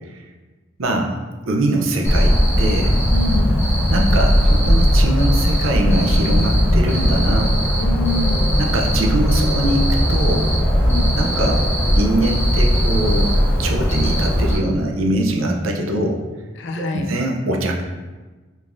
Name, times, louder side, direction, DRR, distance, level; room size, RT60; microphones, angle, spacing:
voice 1, 0.8-1.1 1.4-3.0 3.9-7.5 8.6-10.5 11.2-11.6 12.0-13.3 13.6-16.2 16.8-17.8, right 1 dB, 85° right, 1 dB, 0.6 m, -22 dB
Cricket, 2.0-14.5, equal, 10° left, 1.2 m, -17 dB
voice 2, 3.1-3.6 7.8-8.6 10.8-11.1 16.6-17.1, left 2 dB, 65° left, 3 dB, 0.5 m, -26 dB
5.1 x 3.5 x 2.6 m, 1.3 s
head